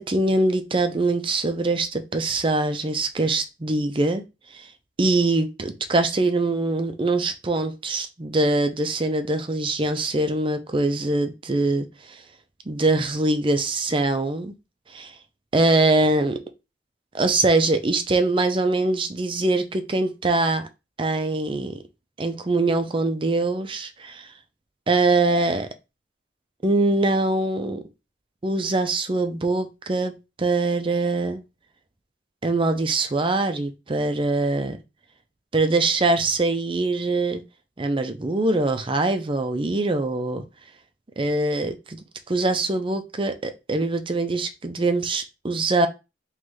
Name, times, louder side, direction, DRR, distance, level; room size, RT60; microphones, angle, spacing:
voice 1, 0.0-4.2 4.5-4.7 5.0-12.2 12.7-14.5 14.9-15.1 15.5-16.4 17.1-20.6 21.0-21.8 22.2-24.3 24.9-25.7 26.6-27.8 28.4-31.4 32.4-34.8 35.5-37.4 37.8-40.4 41.2-45.9, right 2 dB, 30° right, 0.6 m, -23 dB
3.8 x 3.2 x 3.2 m
head